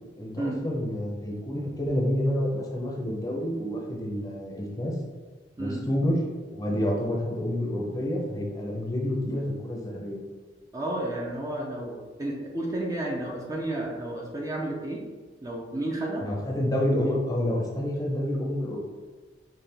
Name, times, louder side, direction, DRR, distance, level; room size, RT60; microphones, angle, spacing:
voice 1, 0.2-4.9 5.6-6.2 6.5-10.2 16.2-18.9, left 1 dB, 20° left, -2 dB, 0.7 m, -28 dB
voice 2, 10.7-15.0 15.4-16.3, right 1 dB, 20° right, -2 dB, 0.6 m, -32 dB
5.7 x 2.4 x 3.4 m, 1.4 s
head